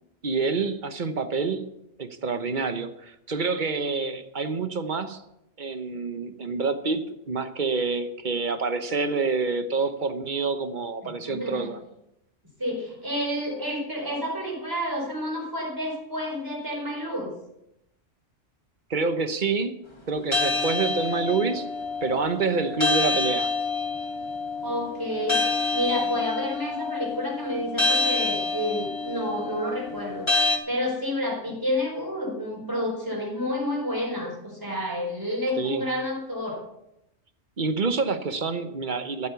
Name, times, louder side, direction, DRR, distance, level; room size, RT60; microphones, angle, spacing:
voice 1, 0.2-1.7 2.0-5.2 5.6-11.8 18.9-19.8 20.1-21.7 22.0-23.5 35.6-35.8 37.6-39.3, right 4 dB, 45° right, 9 dB, 1.2 m, -27 dB
voice 2, 11.0-11.7 12.6-17.3 24.6-25.4 25.7-36.6, left 1 dB, 15° right, -1 dB, 4.6 m, -30 dB
sound 1, 20.3-30.6, left 3 dB, 25° left, 1.7 m, -27 dB
14.0 x 8.5 x 7.0 m, 0.83 s
omnidirectional pair, 1.2 m